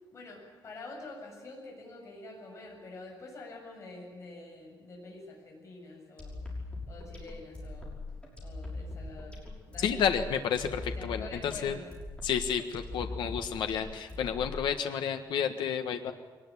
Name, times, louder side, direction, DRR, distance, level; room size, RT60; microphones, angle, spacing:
voice 1, 0.1-6.4 6.9-7.9 8.4-9.4 9.7-10.1 10.9-11.9, left 2 dB, 40° left, 0 dB, 7.3 m, -46 dB
sound 1, 6.2-14.8, left 2 dB, 15° left, 5.8 m, -41 dB
voice 2, 9.8-11.8 12.2-16.1, left 7 dB, 90° left, 6 dB, 1.4 m, -31 dB
22.5 x 19.5 x 9.8 m, 1.4 s
cardioid pair, 175°, 8 cm